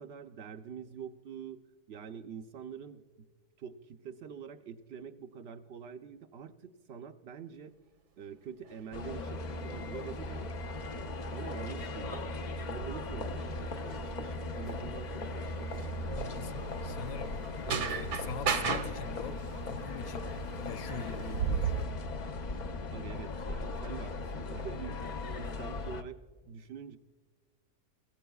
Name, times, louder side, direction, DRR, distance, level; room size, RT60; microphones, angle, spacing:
voice 1, 0.0-1.6 1.9-3.3 3.6-7.8 8.2-10.5 11.0-12.3 12.7-15.8 22.9-26.2 26.5-27.0, right 7 dB, 70° right, 8 dB, 0.6 m, -45 dB
sound 1, 8.6-8.8 9.7-21.8, right 6 dB, 85° right, 1.7 m, -38 dB
sound 2, 8.9-26.0, left 2 dB, 80° left, 0.4 m, -38 dB
voice 2, 16.1-17.4 17.7-19.4 19.7-20.3 20.6-21.9, left 5 dB, 65° left, 11 dB, 0.9 m, -43 dB
23.5 x 15.0 x 2.3 m, 1.5 s
omnidirectional pair, 1.7 m